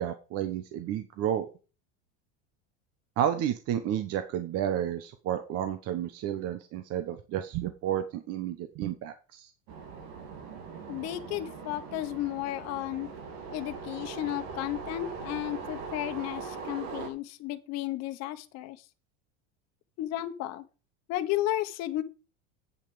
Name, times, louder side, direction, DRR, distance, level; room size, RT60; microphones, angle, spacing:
voice 1, 0.0-1.5 3.2-9.5, right 10 dB, 45° right, 1.1 m, -31 dB
sound 1, 9.7-17.1, right 5 dB, 75° right, 2.9 m, -41 dB
voice 2, 10.9-13.1 13.5-18.8 20.0-20.6 21.1-22.0, left 14 dB, 50° left, 1.2 m, -33 dB
8.4 x 7.3 x 5.0 m
supercardioid pair, 135°, 33 cm